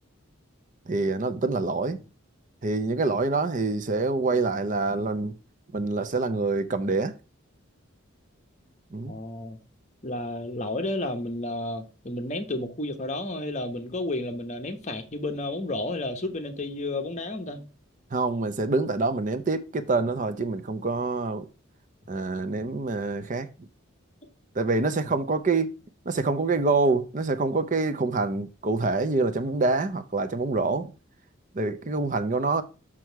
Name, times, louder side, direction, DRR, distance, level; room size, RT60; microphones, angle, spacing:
voice 1, 0.9-2.0 2.6-5.3 5.7-7.1 8.9-9.2 18.1-21.5 22.1-23.7 24.5-25.7 26.1-30.9 31.5-32.6, right 3 dB, 35° right, 0.5 m, -26 dB
voice 2, 9.1-9.6 10.0-17.7 25.0-25.1, left 2 dB, 35° left, 1.0 m, -32 dB
6.2 x 6.0 x 4.6 m
head